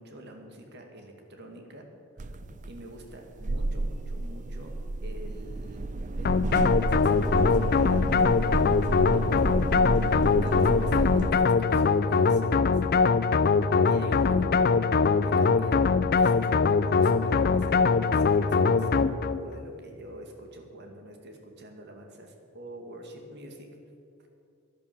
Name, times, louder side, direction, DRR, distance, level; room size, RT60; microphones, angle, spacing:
voice 1, 0.0-1.8 2.2-2.4 2.7-5.8 6.2-6.7 7.0-8.0 9.1-13.2 13.4-13.5 13.9-14.7 15.3-23.7, right 1 dB, 50° right, 3 dB, 1.9 m, -46 dB
sound 1, 2.2-11.3, right 2 dB, 35° right, 0.5 m, -31 dB
sound 2, 6.2-19.4, left 4 dB, 45° left, 0.4 m, -22 dB
11.5 x 11.0 x 7.3 m, 2.5 s
head